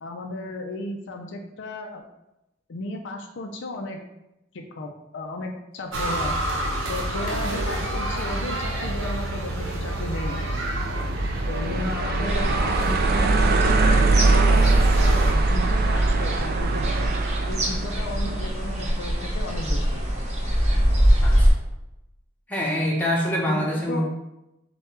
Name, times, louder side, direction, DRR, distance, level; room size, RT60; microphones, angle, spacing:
voice 1, 0.0-2.0 2.7-4.0 4.5-6.3 6.9-10.7 11.5-14.6 15.0-17.1 17.5-20.0 23.5-24.0, left 2 dB, 65° left, 3 dB, 0.4 m, -34 dB
sound 1, 5.9-15.3, right 1 dB, 70° right, 0.8 m, -28 dB
sound 2, 7.1-19.3, right 3 dB, 50° right, 0.3 m, -24 dB
sound 3, 12.2-21.5, equal, 35° right, 0.9 m, -24 dB
voice 2, 22.5-24.0, equal, 10° left, -4 dB, 0.9 m, -25 dB
6.4 x 2.3 x 3.0 m, 0.90 s
head